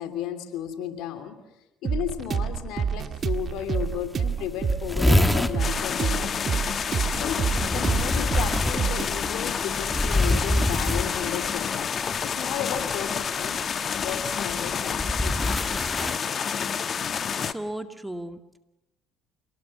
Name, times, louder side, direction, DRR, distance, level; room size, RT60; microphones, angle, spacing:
voice 1, 0.0-1.4 1.8-6.3 7.1-11.9 12.2-15.5 15.8-16.2, left 10 dB, 70° left, 7 dB, 3.0 m, -34 dB
sound 1, 1.8-11.5, right 7 dB, 45° right, 1.7 m, -29 dB
sound 2, 3.2-3.3 3.6-3.7 4.0-4.1 4.3-5.6 7.1-11.5 12.8-13.1 13.9-16.2, left 1 dB, 10° left, 1.6 m, -25 dB
sound 3, 5.6-17.5, left 7 dB, 45° left, 1.3 m, -29 dB
voice 2, 17.3-18.6, right 1 dB, 10° right, 7 dB, 2.1 m, -36 dB
27.5 x 19.0 x 7.6 m, 0.92 s
hypercardioid pair, 65°, 0 cm